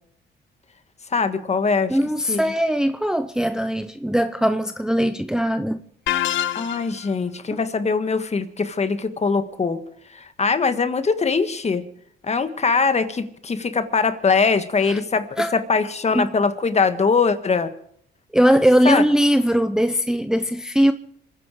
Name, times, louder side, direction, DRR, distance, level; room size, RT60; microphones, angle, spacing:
voice 1, 1.1-2.0 2.3-2.4 6.5-9.8 10.1-11.8 12.2-17.7 18.8-19.0, left 4 dB, 35° left, 1.6 m, -22 dB
voice 2, 1.9-5.8 7.5-7.6 14.9-15.0 15.4-15.5 16.1-16.3 18.3-20.9, equal, 5° right, 0.7 m, -20 dB
sound 1, 6.1-7.1, left 11 dB, 75° left, 0.9 m, -25 dB
27.0 x 10.0 x 5.0 m
cardioid pair, 90°, 20 cm